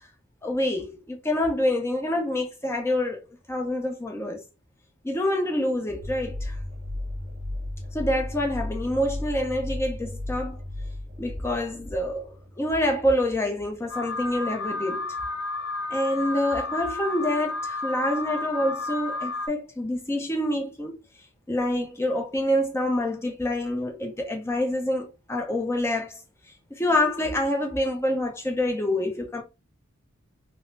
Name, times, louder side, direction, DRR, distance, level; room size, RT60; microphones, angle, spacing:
voice 1, 0.4-3.2 3.5-4.4 5.0-6.5 7.9-10.6 11.2-15.1 15.9-21.0 21.5-26.2 26.7-29.4, left 1 dB, 10° left, 0.6 m, -27 dB
sound 1, 6.0-13.2, left 1 dB, 30° right, 0.4 m, -35 dB
Alarm, 13.9-19.5, left 2 dB, 75° left, 0.8 m, -31 dB
3.6 x 2.0 x 2.6 m
head